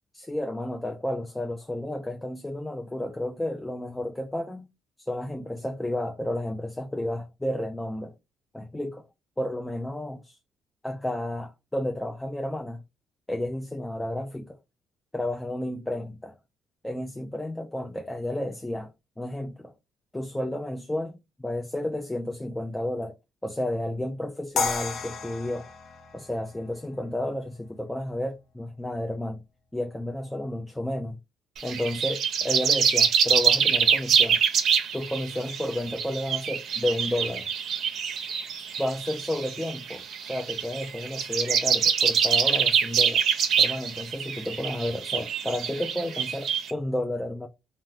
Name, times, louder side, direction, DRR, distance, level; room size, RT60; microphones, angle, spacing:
voice 1, 0.1-4.7 5.0-8.1 8.5-9.0 9.4-10.4 10.8-12.8 13.3-14.6 15.1-16.4 16.8-18.9 19.2-19.7 20.1-23.2 23.4-25.7 26.1-29.4 29.7-31.2 31.6-34.4 34.9-37.5 38.8-43.2 43.6-47.5, left 1 dB, 10° left, 0.3 m, -31 dB
sound 1, 24.6-27.6, left 4 dB, 65° left, 0.5 m, -33 dB
sound 2, 31.6-46.7, right 7 dB, 60° right, 0.5 m, -25 dB
3.1 x 2.0 x 2.4 m
cardioid pair, 110°, 0 cm